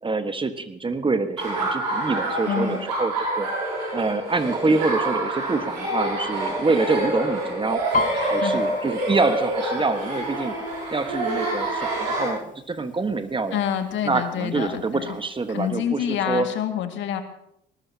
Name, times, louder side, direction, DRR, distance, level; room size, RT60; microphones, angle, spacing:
voice 1, 0.0-3.5 3.9-7.8 8.1-10.5 10.9-13.6 14.0-16.5, right 3 dB, 25° right, 9 dB, 1.5 m, -26 dB
Laughter, 1.4-12.3, right 1 dB, 85° right, 7.0 m, -27 dB
voice 2, 2.5-2.8 8.2-8.6 13.5-15.1 15.5-17.2, left 9 dB, 65° left, 6 dB, 2.1 m, -27 dB
Piano, 7.9-11.6 11.9-12.3 12.7-13.3 13.9-14.0 14.2-15.3 15.6-15.7, left 4 dB, 40° left, 1.0 m, -32 dB
19.5 x 19.0 x 2.9 m, 0.75 s
hypercardioid pair, 60°, 21 cm